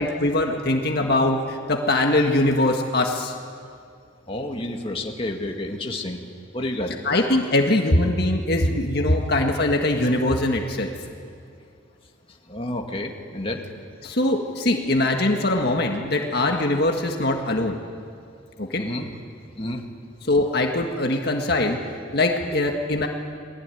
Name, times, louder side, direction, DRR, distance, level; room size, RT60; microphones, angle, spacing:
voice 1, 0.0-3.3 7.0-10.9 14.0-17.8 18.6-18.8 20.3-21.8 22.1-23.1, left 1 dB, 55° left, 2 dB, 1.7 m, -22 dB
voice 2, 4.3-6.2 6.5-6.9 12.5-13.6 18.8-19.1 19.6-19.8, left 1 dB, 30° left, 2 dB, 2.2 m, -30 dB
28.5 x 21.5 x 9.3 m, 2.4 s
head